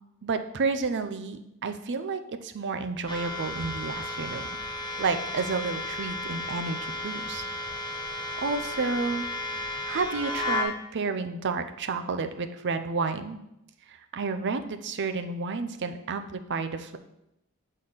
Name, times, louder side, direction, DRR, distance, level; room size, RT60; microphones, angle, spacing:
voice 1, 0.2-4.5 5.0-7.4 8.4-9.3 9.9-13.4 13.9-17.0, right 4 dB, 55° right, 8 dB, 0.6 m, -31 dB
sound 1, 3.1-10.6, left 2 dB, 20° left, 1.1 m, -33 dB
7.8 x 3.8 x 6.6 m, 0.84 s
head